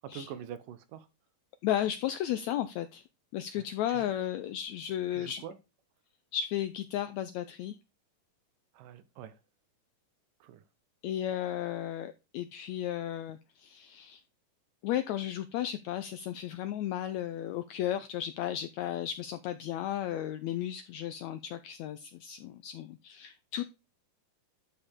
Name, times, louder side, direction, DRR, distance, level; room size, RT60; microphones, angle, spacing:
voice 1, 0.0-1.1 3.6-4.1 5.1-5.6 8.7-9.4 10.4-10.6, right 9 dB, 80° right, 2.6 m, -45 dB
voice 2, 1.6-3.0 3.3-5.4 6.3-7.8 11.0-14.2 14.8-23.6, left 11 dB, 80° left, 1.6 m, -34 dB
11.0 x 5.0 x 3.6 m
omnidirectional pair, 3.8 m